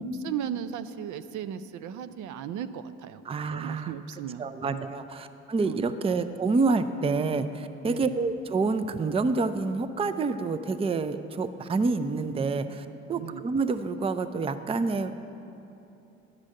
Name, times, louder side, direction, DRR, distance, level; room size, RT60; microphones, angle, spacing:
voice 1, 0.0-3.2 3.5-4.9 5.6-5.9 7.9-8.2 13.2-13.4, right 9 dB, 75° right, 12 dB, 0.5 m, -36 dB
voice 2, 3.3-3.9 4.4-15.2, right 4 dB, 20° right, 10 dB, 0.4 m, -28 dB
10.5 x 5.0 x 7.6 m, 2.9 s
cardioid pair, 90°, 30 cm